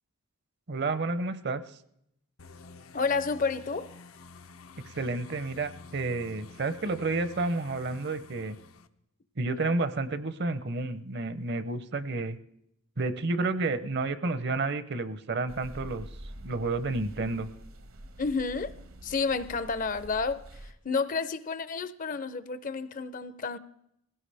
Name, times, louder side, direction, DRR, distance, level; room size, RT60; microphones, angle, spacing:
voice 1, 0.7-1.6 4.9-8.6 9.4-12.4 13.0-16.1 16.4-17.5, right 3 dB, 50° right, 0.7 m, -30 dB
sound 1, 2.4-8.9, left 4 dB, 80° left, 0.7 m, -50 dB
voice 2, 2.9-3.9 18.2-18.8 19.0-23.6, left 4 dB, 40° left, 0.5 m, -30 dB
sound 2, 15.5-20.7, right 1 dB, 75° right, 1.2 m, -46 dB
20.0 x 16.5 x 3.4 m
head